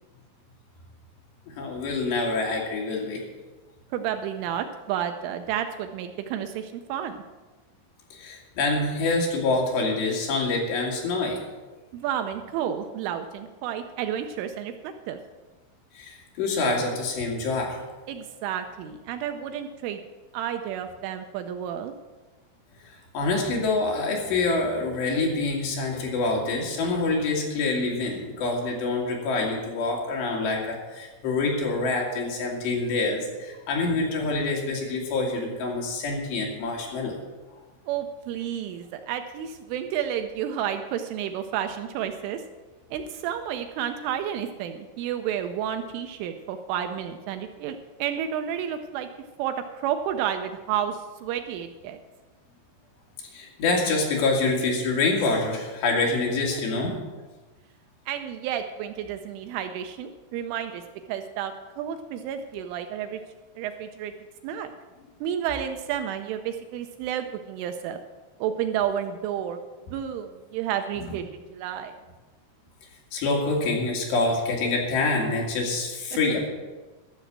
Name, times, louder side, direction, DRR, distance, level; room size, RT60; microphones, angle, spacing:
voice 1, 1.5-3.2 8.1-11.5 15.9-17.8 22.8-37.1 37.5-37.6 53.2-57.0 73.1-76.5, left 3 dB, 60° left, -1 dB, 4.0 m, -26 dB
voice 2, 3.9-7.2 11.9-15.2 18.1-20.0 20.3-21.9 37.9-42.4 42.9-49.1 49.4-52.0 58.1-60.8 61.1-63.2 63.6-64.1 64.4-64.7 65.2-68.0 68.4-69.6 69.9-71.2 71.5-72.0, right 9 dB, 80° right, 7 dB, 2.9 m, -31 dB
13.0 x 7.1 x 8.7 m, 1.2 s
omnidirectional pair, 5.9 m